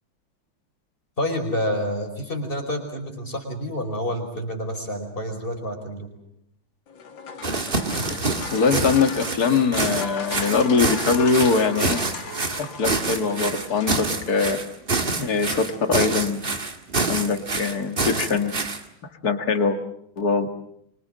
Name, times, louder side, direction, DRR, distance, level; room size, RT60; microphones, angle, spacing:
voice 1, 1.2-6.1, equal, 25° left, 4 dB, 5.1 m, -28 dB
sound 1, 6.9-14.5, left 5 dB, 65° left, 2.5 m, -37 dB
sound 2, 7.4-18.8, right 3 dB, 30° right, 1.9 m, -26 dB
voice 2, 8.5-12.0 12.6-14.6 15.2-16.4 17.1-18.5 19.2-19.8 20.2-20.5, left 5 dB, 50° left, 7 dB, 2.4 m, -22 dB
25.5 x 25.0 x 7.6 m, 0.75 s
omnidirectional pair, 2.2 m